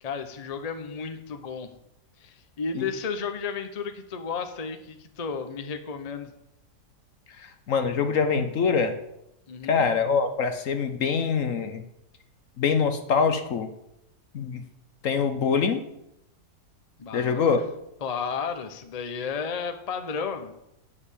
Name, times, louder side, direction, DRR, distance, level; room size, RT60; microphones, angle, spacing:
voice 1, 0.0-1.7 2.2-6.3 9.5-9.9 17.0-17.6 18.0-20.5, left 5 dB, 30° left, 7 dB, 0.7 m, -33 dB
voice 2, 7.4-8.9 9.7-11.8 12.6-13.7 14.3-14.6 15.0-15.8 17.1-17.6, left 5 dB, 60° left, 8 dB, 1.1 m, -24 dB
7.8 x 7.0 x 8.4 m, 0.84 s
omnidirectional pair, 1.7 m